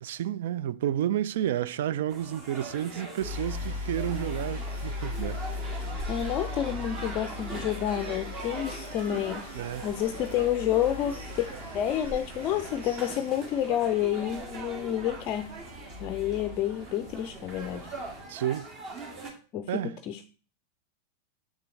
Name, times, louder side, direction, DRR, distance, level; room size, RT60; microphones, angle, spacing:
voice 1, 0.0-5.4 9.5-9.9 18.3-18.7 19.7-20.0, right 11 dB, 55° right, 0.3 m, -31 dB
sound 1, 2.1-19.3, right 3 dB, 30° right, 1.7 m, -42 dB
sound 2, 3.2-18.2, left 2 dB, 75° right, 4.3 m, -39 dB
voice 2, 5.8-9.5 9.8-15.5 16.0-17.9 19.5-20.3, left 11 dB, 35° left, 0.4 m, -29 dB
7.5 x 6.7 x 3.2 m
figure-of-eight pair, 90°, 0 cm